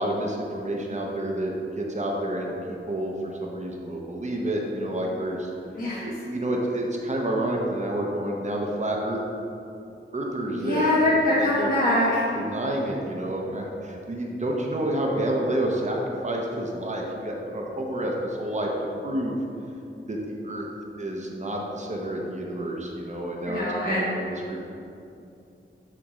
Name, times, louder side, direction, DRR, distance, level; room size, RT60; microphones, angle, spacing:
voice 1, 0.0-2.5 2.9-5.5 6.0-9.2 10.1-11.7 12.4-16.0 16.2-18.7 19.0-19.4 20.1-20.6 21.0-24.6, right 1 dB, 35° right, -1 dB, 0.8 m, -29 dB
voice 2, 10.5-12.2 23.5-24.1, left 1 dB, 45° left, -10 dB, 1.3 m, -23 dB
7.1 x 3.4 x 5.0 m, 2.7 s
wide cardioid pair, 65°, 21 cm